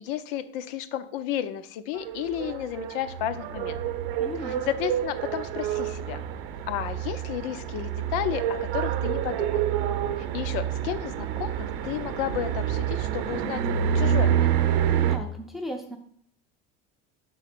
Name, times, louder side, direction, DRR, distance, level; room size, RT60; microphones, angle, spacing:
voice 1, 0.0-3.8 4.5-6.2 6.7-9.6 10.2-14.7, left 11 dB, 70° left, 12 dB, 0.7 m, -32 dB
sound 1, 2.0-15.2, right 9 dB, 55° right, 0.7 m, -28 dB
voice 2, 4.2-4.6 15.1-16.0, equal, ahead, 3 dB, 0.5 m, -36 dB
6.2 x 4.0 x 5.9 m, 0.62 s
cardioid pair, 175°, 29 cm